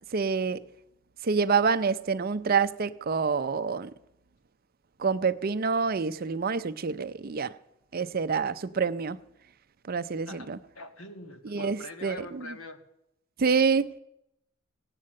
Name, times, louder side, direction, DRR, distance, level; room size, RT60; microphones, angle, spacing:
voice 1, 0.1-0.6 1.2-3.9 5.0-7.5 7.9-9.2 9.9-10.6 11.5-12.5 13.4-14.0, right 5 dB, 45° right, 0.5 m, -27 dB
voice 2, 10.3-12.8, left 2 dB, 75° left, 1.6 m, -43 dB
17.5 x 9.0 x 7.6 m
head